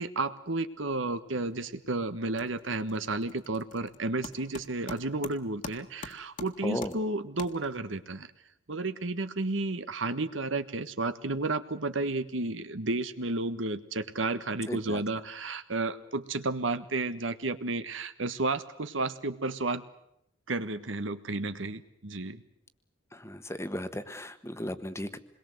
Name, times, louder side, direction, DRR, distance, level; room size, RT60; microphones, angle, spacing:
voice 1, 0.0-8.3 8.7-19.8 20.5-22.4, right 2 dB, 90° right, 11 dB, 1.5 m, -32 dB
sound 1, 1.5-1.9 2.1-8.0, left 3 dB, 40° left, 1.8 m, -46 dB
voice 2, 6.6-7.0 14.7-15.0 23.1-25.2, left 1 dB, 15° left, 10 dB, 1.3 m, -36 dB
27.0 x 22.0 x 7.9 m, 0.78 s
head